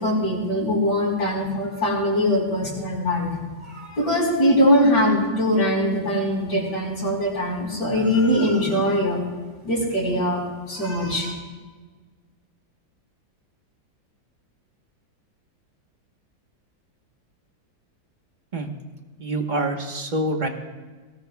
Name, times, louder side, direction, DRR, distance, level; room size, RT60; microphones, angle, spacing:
voice 1, 0.0-3.3 3.6-9.2 9.6-10.4 10.7-11.3, equal, 60° left, -3 dB, 5.1 m, -22 dB
voice 2, 19.2-20.5, right 1 dB, 30° right, 3 dB, 1.1 m, -26 dB
21.5 x 18.0 x 2.3 m, 1.4 s
omnidirectional pair, 2.1 m